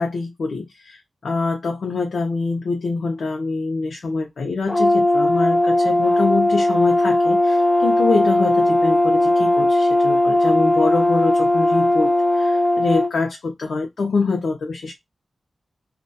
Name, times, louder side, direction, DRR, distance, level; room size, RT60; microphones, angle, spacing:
voice 1, 0.0-14.9, left 3 dB, 75° left, 0.5 m, -24 dB
Brass instrument, 4.7-13.1, left 1 dB, 15° left, 0.5 m, -18 dB
2.2 x 2.2 x 2.6 m
wide cardioid pair, 135°, 0 cm